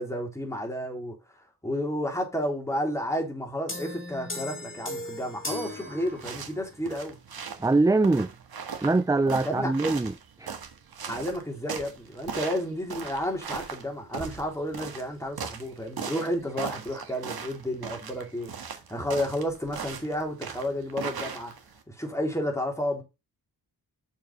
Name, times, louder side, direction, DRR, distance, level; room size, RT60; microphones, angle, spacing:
voice 1, 0.0-7.2 9.4-9.7 11.1-21.5 21.9-23.0, equal, 5° left, 3.6 m, -31 dB
sound 1, 3.7-6.7, left 1 dB, 30° left, 3.6 m, -37 dB
sound 2, 6.1-21.8, right 6 dB, 70° right, 1.7 m, -39 dB
voice 2, 7.6-8.3 8.8-10.1 10.4-10.5, right 3 dB, 10° right, 0.4 m, -23 dB
7.0 x 5.7 x 5.3 m
wide cardioid pair, 95°, 39 cm